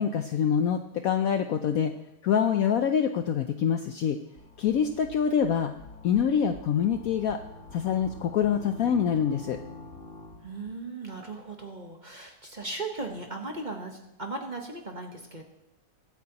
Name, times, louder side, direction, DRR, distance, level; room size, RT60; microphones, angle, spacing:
voice 1, 0.0-1.9 2.2-4.2 4.6-5.7 6.0-7.4 7.7-9.6, left 8 dB, 70° left, 7 dB, 0.9 m, -25 dB
sound 1, 4.4-10.7, left 2 dB, 45° left, 1.7 m, -46 dB
voice 2, 10.4-15.5, right 3 dB, 30° right, 2 dB, 1.0 m, -37 dB
22.0 x 8.2 x 2.9 m, 0.88 s
omnidirectional pair, 1.9 m